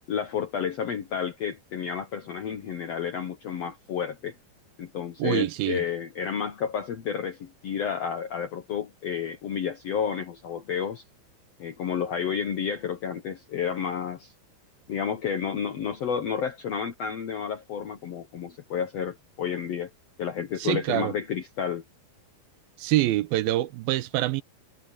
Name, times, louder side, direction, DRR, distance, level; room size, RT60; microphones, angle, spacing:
voice 1, 0.1-4.4 4.8-11.0 11.6-14.3 14.9-19.9 20.2-21.8, left 7 dB, 70° left, 1.5 m, -31 dB
voice 2, 5.2-5.8 20.6-21.1 22.8-24.4, right 16 dB, 80° right, 2.5 m, -25 dB
omnidirectional pair, 4.5 m